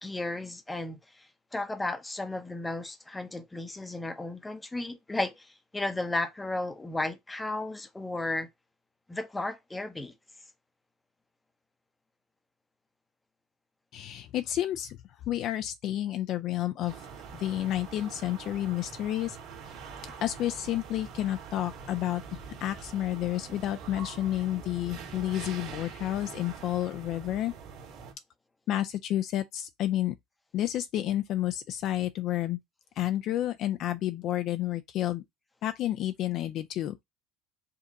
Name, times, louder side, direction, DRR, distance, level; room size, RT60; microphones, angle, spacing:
voice 1, 0.0-8.5 9.1-10.1, left 2 dB, 10° left, 0.6 m, -34 dB
voice 2, 13.9-15.0 15.3-16.9 17.4-19.4 20.2-22.2 22.6-27.5 28.7-30.2 30.5-32.6 33.0-35.2 35.6-37.0, left 13 dB, 45° left, 0.3 m, -30 dB
sound 1, 16.9-28.1, right 6 dB, 50° right, 1.9 m, -44 dB
5.1 x 2.6 x 3.8 m
cardioid pair, 155°, 0 cm